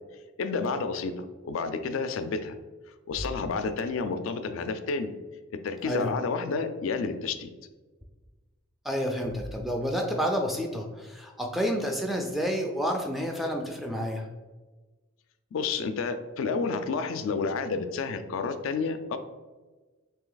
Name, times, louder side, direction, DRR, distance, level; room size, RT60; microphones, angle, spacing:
voice 1, 0.4-2.6 3.1-5.1 5.6-7.5 15.5-19.2, left 4 dB, 85° left, 8 dB, 0.4 m, -30 dB
voice 2, 8.8-14.3, equal, ahead, 2 dB, 0.3 m, -29 dB
3.2 x 2.8 x 3.8 m, 1.3 s
head